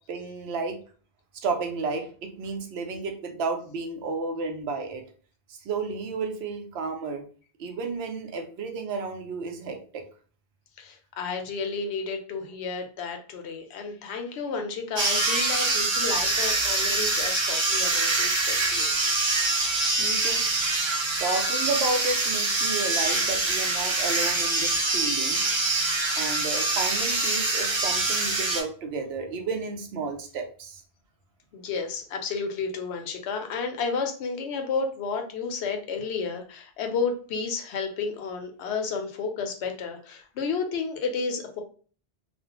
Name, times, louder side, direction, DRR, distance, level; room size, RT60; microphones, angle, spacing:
voice 1, 0.1-0.8 1.3-5.0 5.5-7.2 7.6-10.0 20.0-20.4 21.2-25.4 26.2-30.8, right 4 dB, 80° right, 5 dB, 0.8 m, -32 dB
voice 2, 10.8-18.9 31.5-41.6, left 5 dB, 85° left, 4 dB, 0.8 m, -31 dB
sound 1, 15.0-28.6, right 3 dB, 35° right, 0.5 m, -25 dB
2.4 x 2.0 x 2.8 m, 0.41 s
omnidirectional pair, 1.1 m